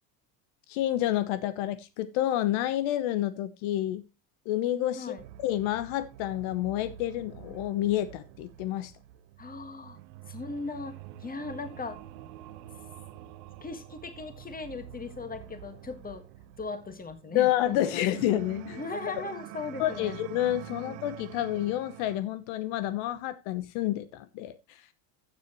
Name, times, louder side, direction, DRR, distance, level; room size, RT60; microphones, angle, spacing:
voice 1, 0.7-4.0 4.4-8.9 17.3-18.8 19.8-24.8, left 13 dB, 70° left, 1.1 m, -29 dB
sound 1, 5.2-22.2, right 12 dB, 80° right, 1.0 m, -47 dB
voice 2, 9.4-10.0 10.3-12.0 13.6-16.3 16.6-18.0 18.8-20.1 20.8-21.0, left 4 dB, 15° left, 1.7 m, -38 dB
14.5 x 7.0 x 3.1 m
supercardioid pair, 110°, 49 cm